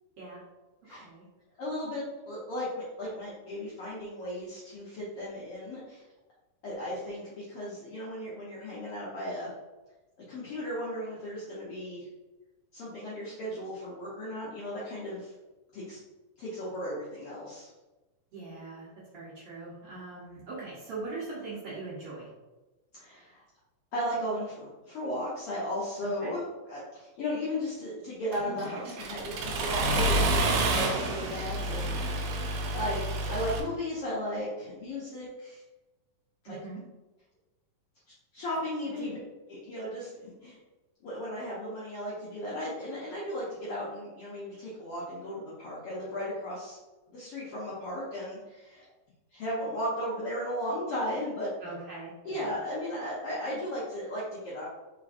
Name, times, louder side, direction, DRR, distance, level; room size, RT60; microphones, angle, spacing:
voice 1, 0.9-1.2 18.3-18.9 19.1-22.3 26.2-26.3 31.2-31.4 36.5-36.8 39.0-39.1 51.6-52.5, right 3 dB, 60° right, -8 dB, 1.7 m, -41 dB
voice 2, 1.6-2.7 3.0-6.0 6.6-9.5 10.3-12.1 12.7-15.3 15.7-16.0 16.4-17.7 22.9-23.4 23.9-32.3 32.7-35.6 36.5-36.6 38.3-39.2 39.5-40.6 41.0-46.8 47.1-48.9 49.3-51.5 52.2-54.7, equal, 75° left, -8 dB, 1.3 m, -35 dB
Accelerating revving vroom, 28.3-33.6, right 2 dB, 75° right, 1.9 m, -29 dB
4.5 x 4.0 x 2.6 m, 1.1 s
omnidirectional pair, 3.8 m